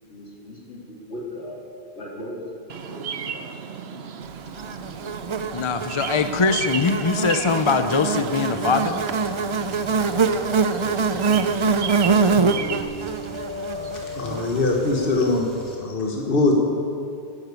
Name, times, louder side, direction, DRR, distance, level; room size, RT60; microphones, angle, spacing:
voice 1, 0.1-1.6 2.0-2.5 2.9-3.6, left 1 dB, 75° left, -4 dB, 3.4 m, -37 dB
Bird vocalization bird call bird song, 2.7-12.8, right 7 dB, 70° right, 1.0 m, -34 dB
Buzz, 4.6-15.0, right 4 dB, 45° right, 0.4 m, -24 dB
voice 2, 5.5-9.0, left 5 dB, 35° left, 9 dB, 0.6 m, -22 dB
sound 1, 8.4-15.8, left 2 dB, ahead, 3.6 m, -38 dB
voice 3, 14.1-16.5, left 3 dB, 55° left, 0 dB, 1.6 m, -22 dB
13.0 x 11.0 x 8.3 m, 2.4 s
omnidirectional pair, 1.1 m